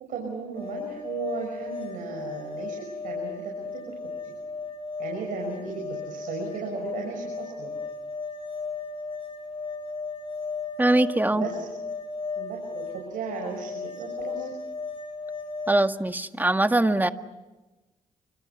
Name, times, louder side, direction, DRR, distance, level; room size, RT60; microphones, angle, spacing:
voice 1, 0.1-4.0 4.2-4.4 5.0-7.8 11.3-11.6 12.3-14.5, right 5 dB, 90° right, 1 dB, 6.0 m, -36 dB
sound 1, 0.5-15.9, left 4 dB, 45° left, 7.0 m, -35 dB
voice 2, 10.8-11.4 15.7-17.1, right 1 dB, 15° right, 8 dB, 1.8 m, -22 dB
30.0 x 26.0 x 5.8 m, 1.1 s
cardioid pair, 65°, 14 cm